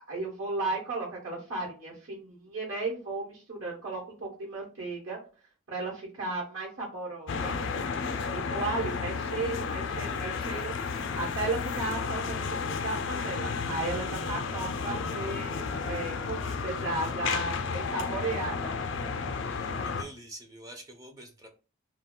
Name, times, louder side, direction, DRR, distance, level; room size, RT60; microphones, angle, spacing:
voice 1, 0.1-5.2 5.7-7.5 8.3-18.8, right 3 dB, 80° right, -3 dB, 1.1 m, -35 dB
sound 1, 7.3-20.0, left 5 dB, 60° left, 0.4 m, -32 dB
voice 2, 8.4-8.8 19.4-21.5, right 1 dB, 15° right, 4 dB, 0.4 m, -48 dB
2.3 x 2.2 x 3.6 m, 0.35 s
head